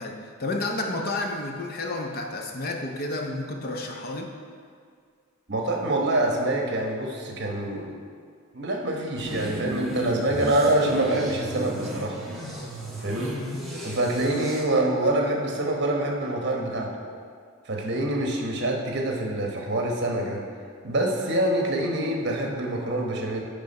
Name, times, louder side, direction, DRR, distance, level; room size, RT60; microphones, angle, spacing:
voice 1, 0.0-4.3 13.3-13.5, left 2 dB, 45° left, 2 dB, 0.7 m, -31 dB
voice 2, 5.5-7.9 8.5-12.2 13.0-13.4 13.8-16.9 17.6-20.4 20.8-23.4, right 1 dB, 55° right, 0 dB, 1.1 m, -25 dB
sound 1, 9.2-14.6, equal, ahead, 1.2 m, -35 dB
10.5 x 3.5 x 5.3 m, 2.1 s
head